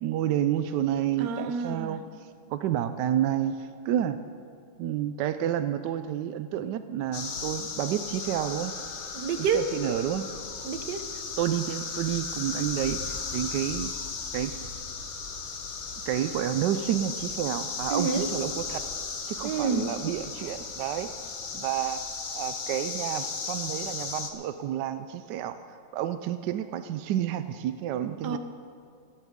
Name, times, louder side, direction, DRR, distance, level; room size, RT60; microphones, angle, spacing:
voice 1, 0.0-2.0 2.5-4.2 4.8-8.7 9.5-10.2 11.4-13.9 14.3-14.5 16.1-18.8 19.3-21.1 21.5-22.0 22.3-28.4, right 11 dB, 80° right, 10 dB, 0.9 m, -30 dB
voice 2, 1.2-2.0 9.1-9.7 10.6-11.1 17.9-18.3 19.4-19.9 28.2-28.4, right 5 dB, 60° right, 8 dB, 1.2 m, -28 dB
sound 1, 7.1-24.3, left 5 dB, 45° left, 0.9 m, -36 dB
17.5 x 14.5 x 3.6 m, 2.4 s
omnidirectional pair, 2.3 m